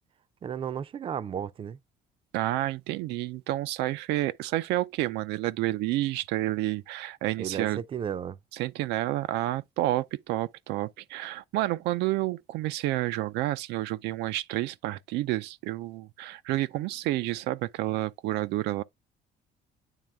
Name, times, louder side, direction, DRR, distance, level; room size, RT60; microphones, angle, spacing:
voice 1, 0.4-1.8 7.4-8.4, right 8 dB, 30° right, 0.4 m, -34 dB
voice 2, 2.3-7.8 8.5-18.8, right 16 dB, 90° right, 0.4 m, -30 dB
8.9 x 3.2 x 3.4 m
cardioid pair, 110°, 17 cm